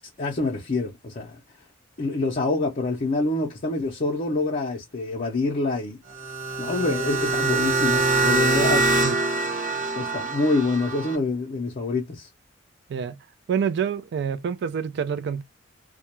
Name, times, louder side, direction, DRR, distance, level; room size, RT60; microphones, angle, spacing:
voice 1, 0.2-1.4 2.0-6.0 6.6-8.8 10.0-12.3, left 2 dB, 45° left, 0.5 m, -26 dB
sound 1, 6.1-11.2, right 3 dB, 45° right, 0.7 m, -24 dB
voice 2, 13.5-15.4, right 7 dB, 60° right, 0.3 m, -27 dB
2.3 x 2.1 x 2.9 m
head